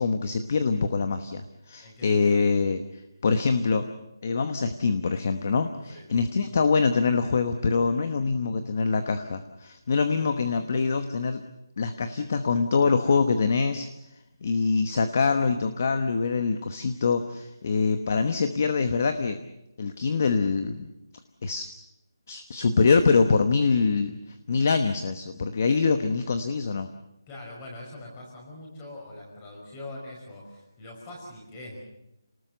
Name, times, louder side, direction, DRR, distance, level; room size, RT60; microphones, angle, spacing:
voice 1, 0.0-3.9 4.2-11.4 11.8-13.9 14.4-19.4 19.8-20.9 21.4-21.7 22.3-26.9, left 4 dB, 35° left, 9 dB, 1.0 m, -24 dB
voice 2, 1.8-2.4 5.9-6.1 27.3-31.8, left 2 dB, 15° left, -1 dB, 5.6 m, -43 dB
28.5 x 19.0 x 6.7 m, 0.89 s
hypercardioid pair, 175°, 2 cm